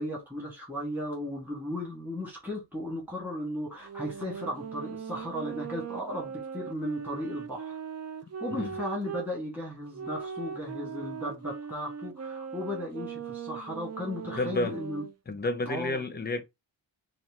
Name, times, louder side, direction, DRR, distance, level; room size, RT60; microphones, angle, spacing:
voice 1, 0.0-7.8 8.4-15.0 15.6-16.0, left 1 dB, 5° right, 1.6 m, -36 dB
sound 1, 3.8-9.3 9.9-15.1, right 6 dB, 35° right, 0.5 m, -39 dB
voice 2, 14.4-14.8 15.3-16.4, left 2 dB, 20° left, 0.7 m, -30 dB
4.2 x 2.4 x 3.6 m
wide cardioid pair, 130°, 45 cm